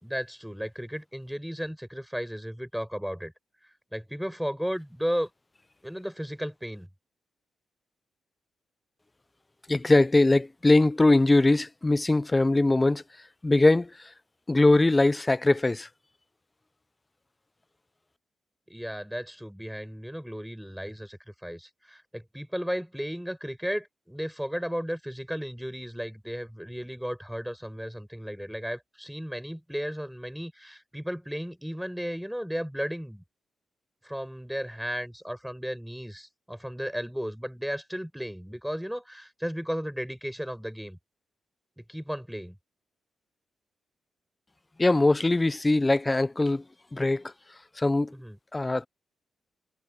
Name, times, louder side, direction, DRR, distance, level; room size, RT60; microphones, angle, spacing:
voice 1, 0.0-3.3 3.9-5.3 5.8-6.9 18.7-33.2 34.0-41.0 41.9-42.6 48.1-48.4, equal, ahead, 4.5 m, -34 dB
voice 2, 9.7-13.0 13.4-13.9 14.5-15.9 44.8-46.6 46.9-47.2 47.8-48.1 48.5-48.9, left 2 dB, 15° left, 0.4 m, -21 dB
cardioid pair, 115°, 0 cm